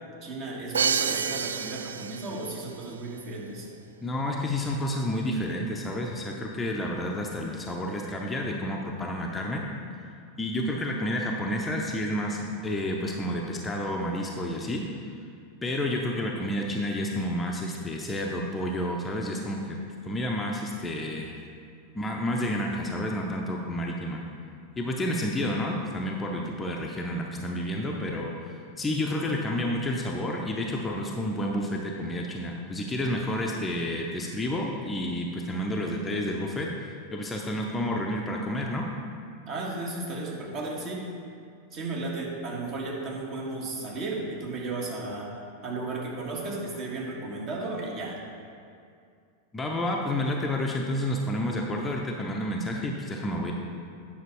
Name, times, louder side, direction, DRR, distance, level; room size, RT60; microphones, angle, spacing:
voice 1, 0.2-3.7 39.5-41.0 41.7-45.3 45.6-48.2, right 2 dB, 35° right, -3 dB, 1.8 m, -34 dB
Crash cymbal, 0.7-2.6, right 6 dB, 70° right, 0.3 m, -28 dB
voice 2, 4.0-9.6 10.4-14.9 15.6-19.8 20.0-21.3 21.9-24.2 24.8-36.7 37.1-38.9 49.5-53.5, left 1 dB, 15° left, 0 dB, 0.7 m, -30 dB
9.4 x 5.9 x 4.6 m, 2.4 s
figure-of-eight pair, 90°, 0 cm